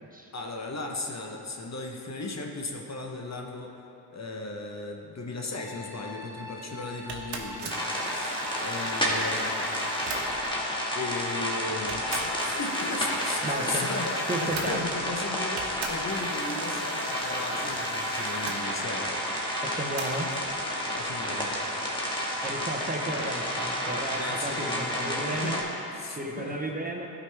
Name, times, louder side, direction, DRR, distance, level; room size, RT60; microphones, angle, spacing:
voice 1, 0.3-3.7 4.1-9.7 10.9-19.1 20.9-21.6 24.1-25.6 25.9-26.9, left 2 dB, 40° left, 1 dB, 1.0 m, -36 dB
sound 1, 5.5-13.5, left 2 dB, 55° left, 1.7 m, -44 dB
sound 2, 7.1-10.7 11.4-11.5 11.9-15.2 15.6-18.6 20.0-20.5, right 4 dB, 65° right, 1.1 m, -40 dB
sound 3, 7.7-25.6, equal, 10° left, 1.6 m, -31 dB
voice 2, 13.4-13.9 14.3-14.8 19.6-20.3 22.4-25.6 26.2-27.1, right 1 dB, 20° right, 0 dB, 0.9 m, -33 dB
12.0 x 4.9 x 3.4 m, 2.9 s
cardioid pair, 55°, 43 cm